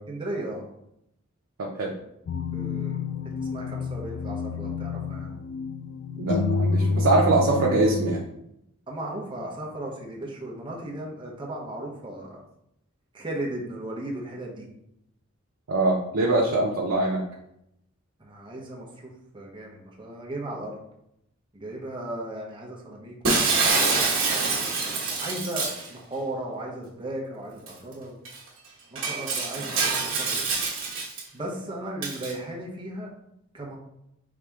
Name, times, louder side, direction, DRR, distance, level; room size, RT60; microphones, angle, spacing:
voice 1, 0.1-0.6 2.5-3.0 3.5-5.3 8.9-12.4 13.1-14.7 18.2-20.8 21.5-28.2 28.9-30.6 31.3-33.1 33.5-33.8, right 1 dB, 25° right, -2 dB, 0.9 m, -36 dB
voice 2, 1.6-1.9 6.2-8.2 15.7-17.2, right 2 dB, 90° right, -2 dB, 0.6 m, -23 dB
sound 1, 2.3-8.2, left 4 dB, 60° left, 0.3 m, -28 dB
Shatter, 23.2-25.9 27.7-27.8 28.2-28.4 29.0-31.2 32.0-32.3, right 4 dB, 65° right, 1.2 m, -25 dB
4.7 x 2.8 x 3.5 m, 0.80 s
head